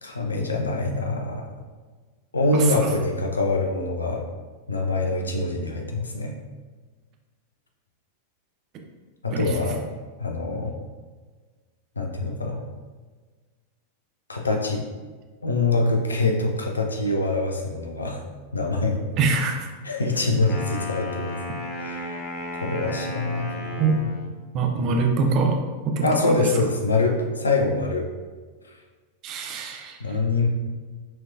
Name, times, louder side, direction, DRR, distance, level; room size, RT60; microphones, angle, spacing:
voice 1, 0.0-1.5 2.3-4.2 4.7-6.4 9.2-9.8 10.2-10.7 12.0-12.6 14.3-14.8 15.4-18.2 18.5-19.1 19.8-21.3 21.8-22.2 22.6-24.1 26.0-28.1 30.0-30.5, left 3 dB, 75° left, 2 dB, 0.6 m, -24 dB
voice 2, 2.5-2.9 9.3-9.6 19.2-19.7 23.8-24.0 24.5-25.6 25.8-26.5 29.2-30.0, right 4 dB, 35° right, 2 dB, 0.7 m, -24 dB
Wind instrument woodwind instrument, 20.4-24.3, left 1 dB, 35° left, 0.8 m, -34 dB
5.9 x 3.2 x 2.6 m, 1.4 s
figure-of-eight pair, 90°, 0 cm